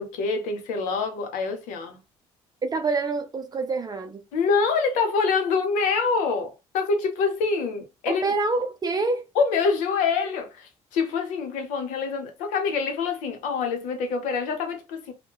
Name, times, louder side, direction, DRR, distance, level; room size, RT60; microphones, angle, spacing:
voice 1, 0.0-2.0 4.3-8.3 9.3-15.1, left 5 dB, 80° left, 0.8 m, -25 dB
voice 2, 2.6-4.2 8.1-9.2, right 3 dB, 30° right, 0.4 m, -26 dB
2.8 x 2.1 x 2.2 m
supercardioid pair, 75°, 13 cm